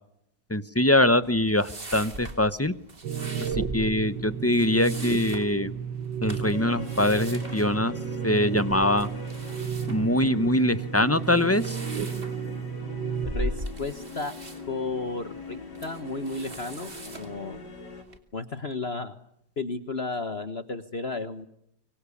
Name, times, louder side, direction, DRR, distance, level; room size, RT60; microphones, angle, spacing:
voice 1, 0.5-2.7 3.7-5.7 6.2-7.9 8.2-9.1 9.9-11.8, left 1 dB, 15° left, 13 dB, 0.5 m, -23 dB
sound 1, 1.2-18.2, right 1 dB, 30° right, 2.9 m, -41 dB
sound 2, 3.0-13.3, right 7 dB, 75° right, 1.9 m, -33 dB
sound 3, 6.5-18.0, left 4 dB, 70° left, 4.4 m, -42 dB
voice 2, 13.2-14.3 14.7-17.6 18.3-19.1 19.6-21.5, left 3 dB, 40° left, 10 dB, 1.4 m, -33 dB
25.0 x 24.5 x 8.5 m, 0.78 s
omnidirectional pair, 1.9 m